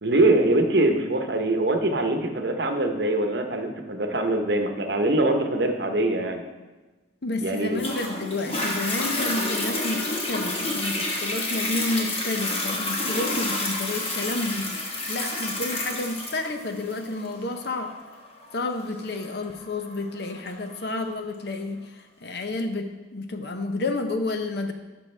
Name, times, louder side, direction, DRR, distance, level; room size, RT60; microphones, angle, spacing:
voice 1, 0.0-6.4 7.4-7.8, right 2 dB, 60° right, 5 dB, 0.9 m, -23 dB
voice 2, 7.2-17.9 18.5-24.7, left 2 dB, 55° left, 6 dB, 0.7 m, -30 dB
Toilet flush, 7.8-20.8 21.4-21.5, left 2 dB, 30° left, 1.1 m, -29 dB
11.5 x 6.2 x 3.3 m, 1.2 s
head